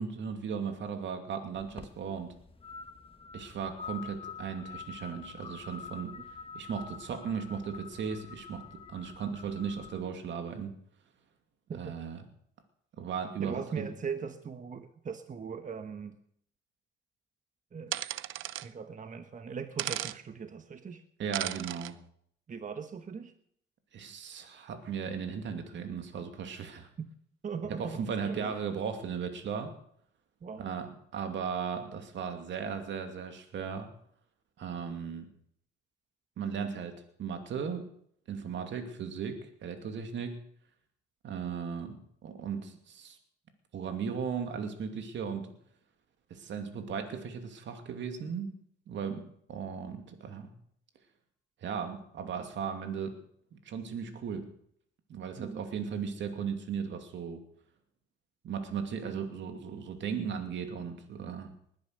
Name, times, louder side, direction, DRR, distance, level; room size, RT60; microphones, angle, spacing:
voice 1, 0.0-2.3 3.3-6.1 6.5-10.7 11.7-12.3 13.0-13.9 21.2-22.0 23.9-26.9 27.7-29.7 30.6-33.9 34.6-35.3 36.4-37.8 38.3-40.4 41.2-43.2 43.7-45.5 46.3-48.5 48.9-50.5 51.6-53.2 53.6-54.5 55.1-57.4 58.4-61.5, right 6 dB, 70° right, 6 dB, 2.6 m, -36 dB
sound 1, 1.6-10.0, left 6 dB, 25° left, 1.3 m, -46 dB
voice 2, 13.4-16.1 17.7-17.9 18.6-21.0 22.5-23.3 27.0-27.1 27.4-28.5 30.4-30.7 55.4-55.6, right 6 dB, 40° right, 8 dB, 1.4 m, -39 dB
sound 2, 17.9-18.7 19.8-20.2 21.3-21.9, right 14 dB, 85° right, 0.6 m, -35 dB
20.5 x 10.5 x 6.7 m, 0.67 s
cardioid pair, 90°, 20 cm